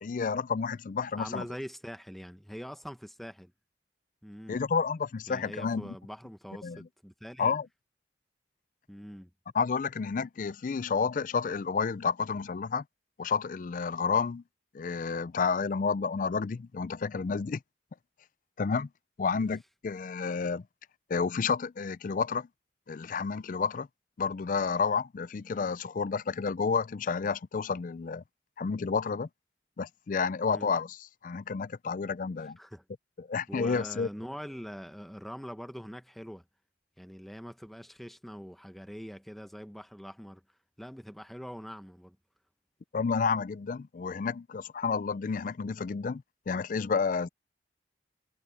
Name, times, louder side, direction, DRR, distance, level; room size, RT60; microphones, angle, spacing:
voice 1, 0.0-1.5 4.5-5.9 6.6-6.9 7.4-7.7 9.5-12.8 13.2-14.4 14.7-17.6 18.6-18.9 19.2-20.6 21.1-22.5 22.9-23.9 24.2-28.2 28.6-29.3 29.8-31.0 31.2-32.6 33.2-34.1 42.9-47.3, left 5 dB, 45° left, 0.4 m, -30 dB
voice 2, 1.2-3.5 4.2-4.6 5.3-7.5 8.9-9.3 19.3-19.5 30.5-30.7 32.6-32.8 33.5-36.4 37.0-40.4 40.8-42.2, equal, ahead, 0.9 m, -43 dB
head